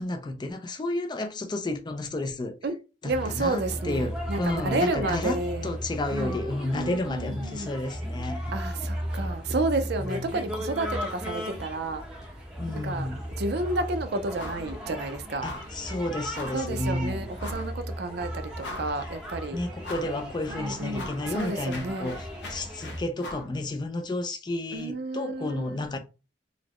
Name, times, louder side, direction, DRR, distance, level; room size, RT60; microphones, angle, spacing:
voice 1, 0.0-2.6 3.0-8.6 10.0-10.3 12.6-13.3 15.4-17.3 19.0-19.1 19.5-26.0, left 2 dB, 25° left, 0.4 m, -31 dB
voice 2, 3.0-5.7 6.1-6.4 6.7-7.7 8.5-12.0 12.7-13.1 13.4-15.5 16.5-18.5 18.8-19.6 20.5-22.1 24.7-26.0, right 2 dB, 60° right, 0.5 m, -31 dB
sound 1, 3.1-23.0, equal, 5° right, 0.8 m, -36 dB
sound 2, 14.4-14.7 15.0-15.1 15.4-15.8 16.3-16.7 17.4-17.7 18.2-18.3 18.6-19.1 19.8-20.2 20.5-23.5, left 2 dB, 65° left, 0.6 m, -40 dB
4.0 x 2.1 x 2.9 m
head